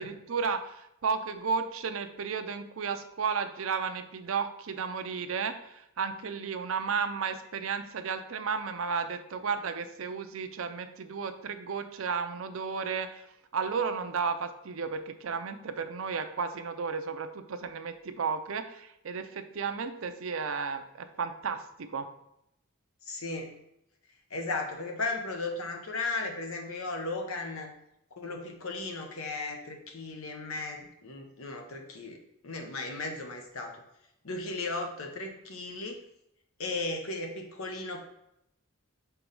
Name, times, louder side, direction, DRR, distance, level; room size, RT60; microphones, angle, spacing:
voice 1, 0.0-13.3 13.5-22.1, right 5 dB, 70° right, 8 dB, 0.6 m, -33 dB
voice 2, 23.0-23.5 24.3-27.7 28.2-32.2 32.4-33.8 34.2-36.0 36.6-38.0, left 3 dB, 80° left, 3 dB, 1.0 m, -36 dB
4.6 x 3.9 x 5.4 m, 0.80 s
head